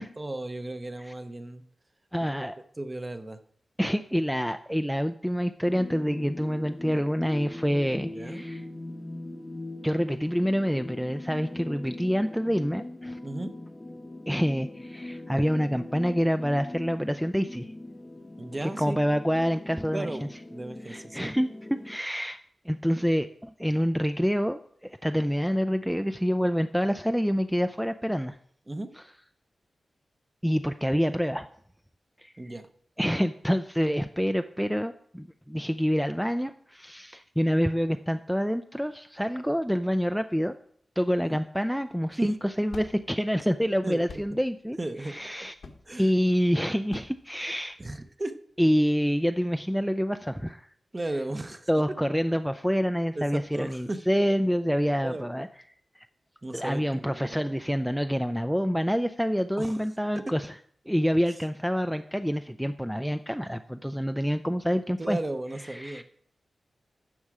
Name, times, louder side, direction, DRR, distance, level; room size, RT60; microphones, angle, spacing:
voice 1, 0.0-1.6 2.8-3.4 8.0-8.5 13.2-13.5 18.4-19.0 19.9-21.3 28.7-28.9 32.4-32.7 41.2-41.4 42.1-42.4 43.8-44.0 44.8-45.2 45.9-46.1 47.8-48.4 50.9-51.7 53.1-54.0 55.0-55.4 56.4-57.4 59.6-59.8 60.1-60.3 64.7-66.0, right 2 dB, 25° right, 9 dB, 0.8 m, -35 dB
voice 2, 2.1-2.6 3.8-8.6 9.8-13.2 14.3-17.7 18.8-20.1 20.9-21.5 21.8-22.4 22.7-28.4 30.4-31.5 32.2-32.3 33.0-40.5 41.0-44.8 45.0-45.5 46.0-47.8 48.6-50.7 51.7-55.5 56.0-56.1 56.5-60.5 60.9-65.2 65.7-66.0, equal, ahead, 8 dB, 0.4 m, -27 dB
sound 1, 5.7-22.0, left 1 dB, 20° left, 0.8 m, -41 dB
sound 2, 41.9-48.1, left 4 dB, 80° left, 1.2 m, -49 dB
12.0 x 7.3 x 4.8 m, 0.63 s
wide cardioid pair, 90°, 0 cm